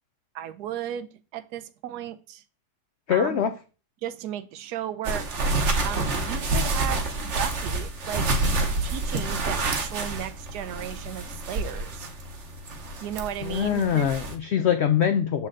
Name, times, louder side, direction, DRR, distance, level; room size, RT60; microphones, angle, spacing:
voice 1, 0.3-2.4 3.1-3.5 4.0-5.3 5.8-8.3 8.8-12.1 13.0-14.1, right 10 dB, 80° right, 13 dB, 1.1 m, -35 dB
voice 2, 3.1-3.5 13.4-15.5, left 9 dB, 75° left, 8 dB, 0.6 m, -23 dB
sound 1, 5.0-14.3, right 2 dB, 50° right, 1.1 m, -28 dB
6.6 x 4.2 x 3.7 m, 0.35 s
omnidirectional pair, 1.7 m